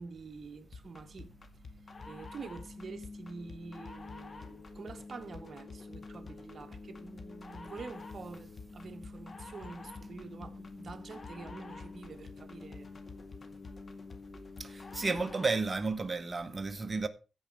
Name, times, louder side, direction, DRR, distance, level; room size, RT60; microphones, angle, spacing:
voice 1, 0.0-1.3 2.1-12.9, right 4 dB, 50° right, 1.6 m, -47 dB
sound 1, 0.7-15.7, left 3 dB, 40° left, 1.9 m, -47 dB
voice 2, 14.6-17.1, right 3 dB, 30° right, 1.2 m, -32 dB
15.5 x 5.2 x 4.9 m
cardioid pair, 80°, 0 cm